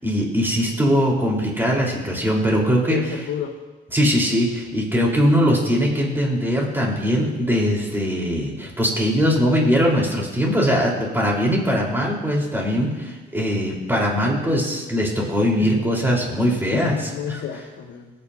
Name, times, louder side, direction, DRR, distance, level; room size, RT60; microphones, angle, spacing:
voice 1, 0.0-3.2 3.9-17.4, equal, 10° right, -2 dB, 4.2 m, -21 dB
voice 2, 2.9-3.5 15.6-15.9 16.7-18.1, left 9 dB, 80° left, 0 dB, 1.2 m, -30 dB
21.5 x 9.6 x 2.8 m, 1.2 s
cardioid pair, 90°, 20 cm